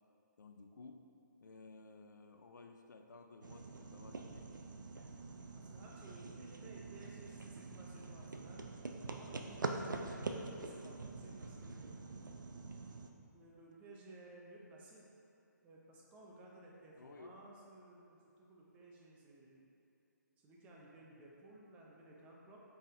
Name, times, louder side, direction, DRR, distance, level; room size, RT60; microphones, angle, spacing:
voice 1, 0.4-1.1 1.4-4.6 17.0-17.4, left 3 dB, 70° left, 5 dB, 0.4 m, -56 dB
sound 1, 3.4-13.1, right 3 dB, 85° right, 0.4 m, -45 dB
voice 2, 5.5-8.6 9.2-12.4 13.0-15.0 15.6-19.7 20.4-22.6, right 2 dB, 15° right, -3 dB, 0.5 m, -57 dB
5.3 x 3.5 x 2.6 m, 2.8 s
figure-of-eight pair, 140°, 10 cm